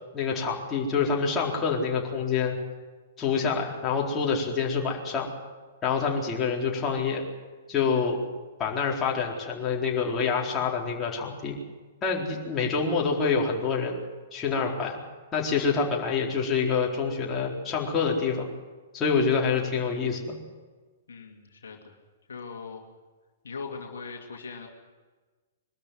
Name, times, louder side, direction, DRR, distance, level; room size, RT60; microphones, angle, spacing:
voice 1, 0.1-2.6 3.2-5.3 5.8-7.2 7.7-8.2 8.6-11.6 12.0-14.0 14.3-15.0 15.3-18.5 18.9-20.4, left 5 dB, 20° left, -2 dB, 4.2 m, -26 dB
voice 2, 21.1-22.0 22.3-22.8 23.4-24.7, left 5 dB, 70° left, 1 dB, 2.5 m, -40 dB
23.0 x 13.0 x 9.5 m, 1.3 s
figure-of-eight pair, 115°, 0 cm